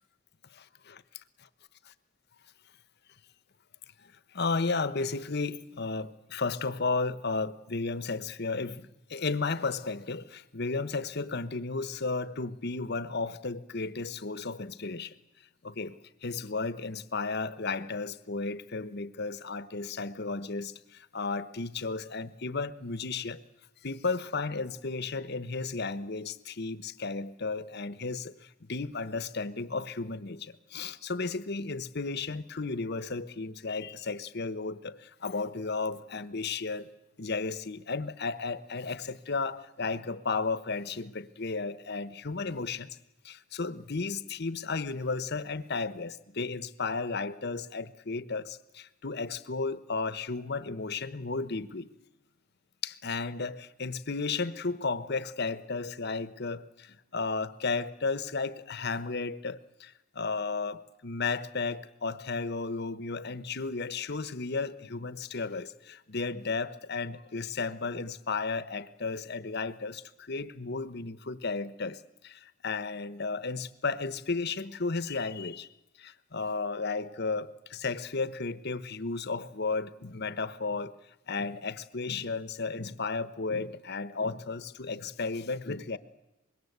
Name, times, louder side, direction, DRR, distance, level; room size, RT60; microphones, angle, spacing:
voice 1, 4.0-15.2 15.6-23.4 23.8-36.9 37.2-43.0 43.2-51.9 52.8-75.7 76.0-80.9 81.3-86.0, left 4 dB, 50° left, 1.0 m, -34 dB
25.0 x 21.5 x 8.1 m
head